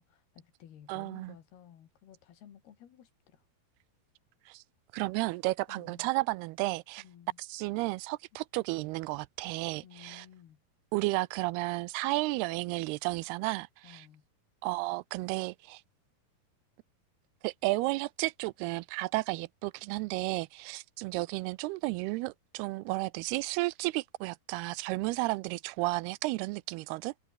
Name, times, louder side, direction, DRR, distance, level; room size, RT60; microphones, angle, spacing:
voice 1, 0.0-3.4 5.7-6.1 7.0-7.4 9.8-10.6 13.8-14.3, left 10 dB, 75° left, 4.3 m, -55 dB
voice 2, 0.9-1.3 4.5-4.6 4.9-7.0 7.4-10.3 10.9-14.0 14.6-15.8 17.4-27.1, right 21 dB, 85° right, 2.5 m, -33 dB
omnidirectional pair, 4.6 m